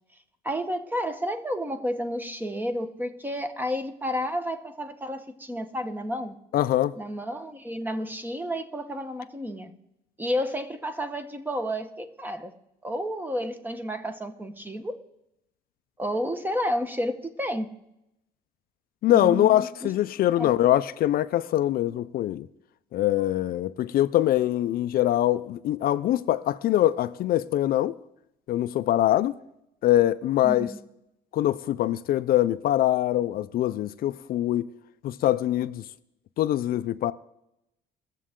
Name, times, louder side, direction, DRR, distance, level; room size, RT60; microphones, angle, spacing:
voice 1, 0.4-6.4 7.0-9.7 10.2-12.5 12.8-15.0 16.0-17.7 19.1-19.9 20.4-20.6 30.4-30.8, equal, 10° right, 1.2 m, -31 dB
voice 2, 6.5-6.9 19.0-22.5 22.9-28.0 28.5-29.3 29.8-30.7 31.3-34.7 35.0-35.8 36.4-37.1, left 13 dB, 60° left, 0.5 m, -23 dB
22.0 x 7.5 x 3.7 m
cardioid pair, 110°, 17 cm